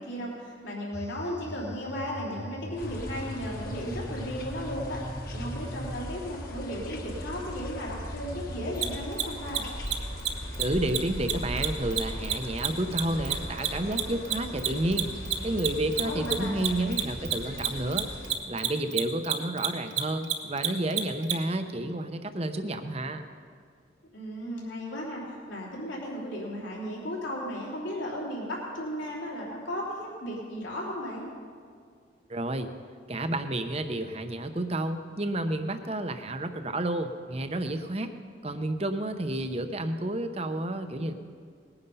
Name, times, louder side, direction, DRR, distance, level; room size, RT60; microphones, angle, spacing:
voice 1, 0.0-5.0 5.3-9.6 16.0-16.6 24.1-31.3, equal, 75° left, -4 dB, 3.6 m, -35 dB
sound 1, 0.9-6.0, left 1 dB, 15° left, 0.5 m, -40 dB
sound 2, 2.8-18.4, equal, 50° left, 1.6 m, -39 dB
Mechanisms, 8.8-8.9 9.1-9.2 9.5-9.6 9.8-9.9 10.2-10.3 10.5-10.6 10.9-11.0 11.3-14.0 14.3-21.3, right 13 dB, 80° right, 1.2 m, -27 dB
voice 2, 10.6-15.1 15.4-18.1 18.5-23.2 32.3-32.7 33.1-38.1 38.4-41.1, right 1 dB, 30° right, 8 dB, 0.8 m, -30 dB
20.0 x 9.8 x 5.5 m, 2.1 s
head